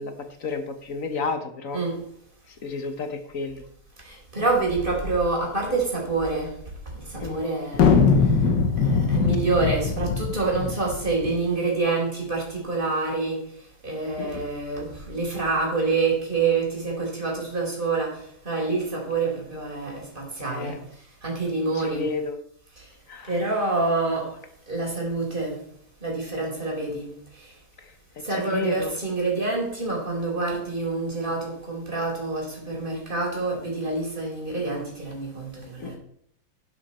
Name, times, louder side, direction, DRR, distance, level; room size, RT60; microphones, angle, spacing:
voice 1, 0.0-1.8 2.6-3.6 7.2-7.4 14.2-14.4 20.5-20.8 21.7-22.4 23.1-23.4 28.3-28.9 35.8-35.9, left 4 dB, 50° left, 8 dB, 1.6 m, -32 dB
voice 2, 4.0-6.6 7.0-8.0 8.8-13.4 13.8-20.8 21.2-22.1 22.8-22.9 23.3-24.3 24.7-25.6 26.0-27.5 28.2-36.0, right 3 dB, 30° right, -2 dB, 4.5 m, -27 dB
sound 1, 7.7-11.4, left 5 dB, 85° left, 1.8 m, -21 dB
11.5 x 10.5 x 4.4 m, 0.68 s
omnidirectional pair, 1.8 m